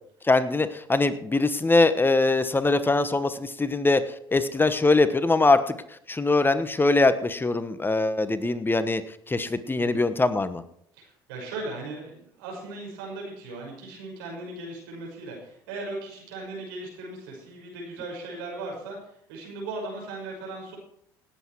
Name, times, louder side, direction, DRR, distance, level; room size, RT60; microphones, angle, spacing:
voice 1, 0.3-4.0 4.3-5.8 6.1-9.0 9.3-10.6, left 3 dB, 20° left, 12 dB, 1.1 m, -22 dB
voice 2, 9.7-10.1 10.9-20.8, right 2 dB, 85° right, -1 dB, 5.6 m, -38 dB
18.5 x 8.4 x 4.7 m, 0.67 s
hypercardioid pair, 70°, 11 cm